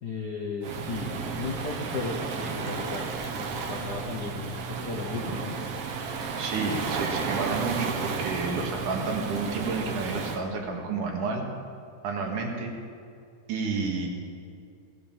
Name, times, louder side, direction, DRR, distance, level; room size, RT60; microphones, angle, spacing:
voice 1, 0.0-5.6, left 4 dB, 75° left, 1 dB, 0.9 m, -36 dB
Waves surf, 0.6-10.4, right 5 dB, 60° right, 1.9 m, -32 dB
voice 2, 6.4-11.4 12.0-12.7 13.5-14.1, right 4 dB, 85° right, 1 dB, 3.4 m, -30 dB
17.5 x 10.0 x 7.3 m, 2.4 s
omnidirectional pair, 3.6 m